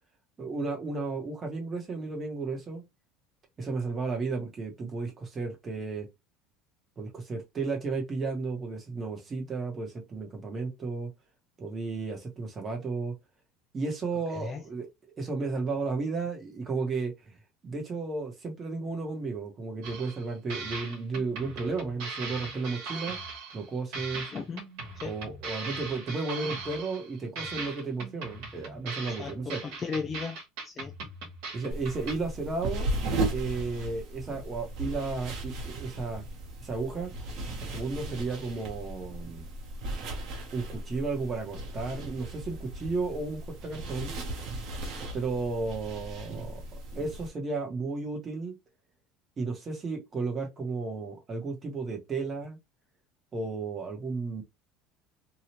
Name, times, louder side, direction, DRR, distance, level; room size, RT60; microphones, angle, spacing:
voice 1, 0.4-2.8 3.6-6.1 7.0-11.1 11.6-13.1 13.7-14.9 15.2-17.1 17.6-23.2 23.5-24.3 25.0-29.6 31.5-32.9 33.3-36.2 36.6-37.1 37.6-39.5 40.5-44.1 45.1-46.6 46.9-48.6 49.4-52.6 53.3-54.4, right 3 dB, 20° right, 1.0 m, -33 dB
voice 2, 14.1-14.6 24.3-24.7 25.0-25.2 29.2-30.9 38.1-38.2, left 5 dB, 20° left, 0.3 m, -37 dB
sound 1, 19.8-20.2 20.5-23.7 23.9-27.1 27.4-32.1, right 3 dB, 75° right, 1.2 m, -39 dB
sound 2, 31.7-47.3, right 2 dB, 50° right, 1.0 m, -36 dB
2.8 x 2.3 x 3.0 m
cardioid pair, 165°, 0 cm